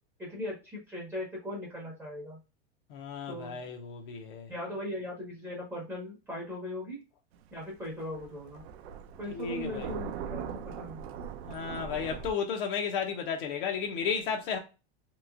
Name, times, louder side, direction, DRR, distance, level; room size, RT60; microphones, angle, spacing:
voice 1, 0.2-2.4 3.3-3.6 4.5-7.0 7.5-8.6 9.2-11.0, left 1 dB, 5° right, 0.8 m, -39 dB
voice 2, 2.9-4.5 9.3-9.9 11.5-14.6, left 6 dB, 55° left, 0.7 m, -33 dB
Thunder, 7.3-12.3, right 7 dB, 75° right, 0.5 m, -40 dB
3.0 x 3.0 x 2.3 m
supercardioid pair, 170°, 32 cm